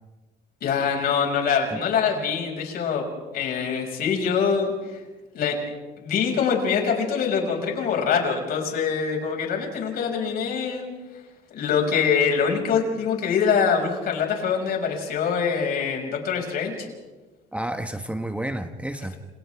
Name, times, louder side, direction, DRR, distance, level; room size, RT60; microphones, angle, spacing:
voice 1, 0.6-4.7 5.3-5.6 6.0-10.9 11.5-16.9, left 6 dB, 65° left, 5.9 m, -24 dB
voice 2, 17.5-19.2, right 1 dB, 5° right, 1.1 m, -30 dB
29.5 x 29.0 x 3.5 m
cardioid pair, 110°, 17 cm